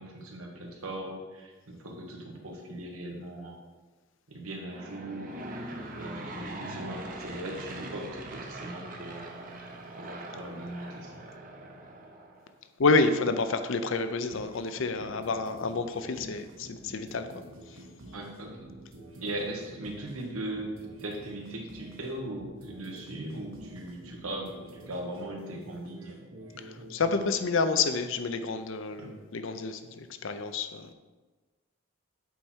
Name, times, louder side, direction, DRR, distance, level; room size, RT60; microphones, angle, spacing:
voice 1, 0.0-3.6 4.3-5.3 6.0-9.3 10.0-11.2 18.1-18.7 19.2-26.2 29.0-29.2, right 1 dB, 90° right, 0 dB, 1.5 m, -39 dB
Aircraft / Engine, 4.5-12.5, right 2 dB, 40° right, 0.8 m, -42 dB
voice 2, 12.8-17.3 26.6-30.9, left 3 dB, 65° left, 9 dB, 0.5 m, -29 dB
sound 1, 14.3-27.2, right 1 dB, 75° right, 1.2 m, -48 dB
8.1 x 4.4 x 4.4 m, 1.3 s
head